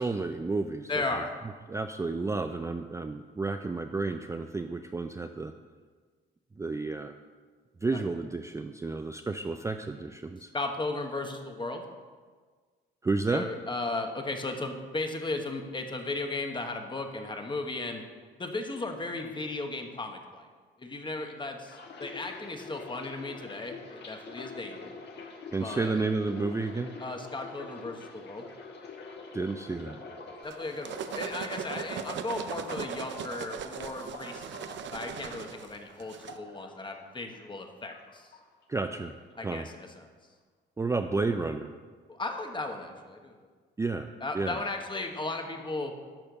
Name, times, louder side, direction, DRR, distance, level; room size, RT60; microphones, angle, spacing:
voice 1, 0.0-1.1 1.7-5.5 6.6-7.1 7.8-10.5 13.0-13.4 25.5-26.9 29.3-30.0 38.7-39.1 39.4-39.7 40.8-41.7 43.8-44.6, right 3 dB, 15° right, 6 dB, 0.4 m, -31 dB
voice 2, 0.9-1.3 7.9-8.0 10.5-11.8 13.3-18.0 18.4-20.5 20.8-24.9 25.6-26.0 27.0-28.5 30.4-38.3 39.4-40.1 42.1-43.4 44.2-45.9, left 2 dB, 25° left, 4 dB, 1.2 m, -36 dB
sound 1, 21.7-37.6 37.9-38.8 39.1-39.4, left 3 dB, 60° left, 1.4 m, -46 dB
sound 2, 30.5-36.4, right 8 dB, 65° right, 0.6 m, -39 dB
11.0 x 4.4 x 6.7 m, 1.5 s
cardioid pair, 90°, 20 cm